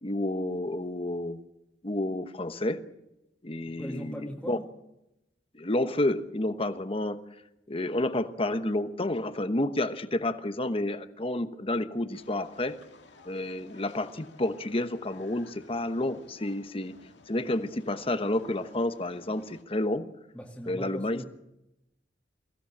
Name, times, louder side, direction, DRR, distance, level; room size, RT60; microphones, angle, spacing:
voice 1, 0.0-1.4 1.8-2.8 3.4-4.6 5.5-7.2 7.7-12.8 13.3-17.0 17.3-20.1 20.7-21.2, left 1 dB, 30° left, 10 dB, 1.1 m, -30 dB
voice 2, 3.8-4.7 20.3-21.2, equal, 5° left, -4 dB, 2.0 m, -39 dB
sound 1, 12.1-19.6, left 3 dB, 90° left, 2.2 m, -55 dB
23.0 x 16.5 x 8.6 m, 0.90 s
head